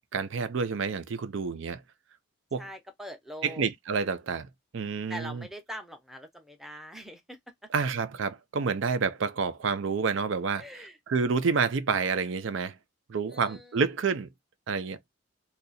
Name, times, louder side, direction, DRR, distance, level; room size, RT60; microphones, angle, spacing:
voice 1, 0.1-1.8 2.5-2.6 3.4-4.5 4.7-5.4 7.7-10.6 11.1-12.8 13.1-14.3 14.7-15.0, right 5 dB, 60° right, 0.4 m, -28 dB
voice 2, 2.6-3.7 5.1-7.4 10.6-11.0 13.3-13.8, equal, ahead, 0.6 m, -43 dB
2.7 x 2.4 x 4.0 m
head